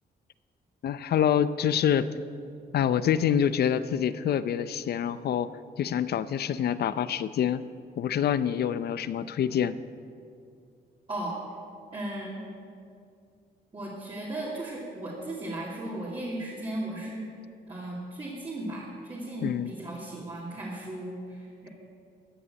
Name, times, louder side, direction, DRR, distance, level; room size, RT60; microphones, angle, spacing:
voice 1, 0.8-2.1 2.7-5.5 5.8-7.6 8.0-9.8 19.4-19.7, left 9 dB, 65° left, 14 dB, 0.5 m, -26 dB
voice 2, 11.9-12.4 13.7-17.2 17.7-21.7, right 1 dB, 30° right, -5 dB, 2.5 m, -36 dB
14.0 x 6.9 x 8.8 m, 2.4 s
cardioid pair, 100°, 18 cm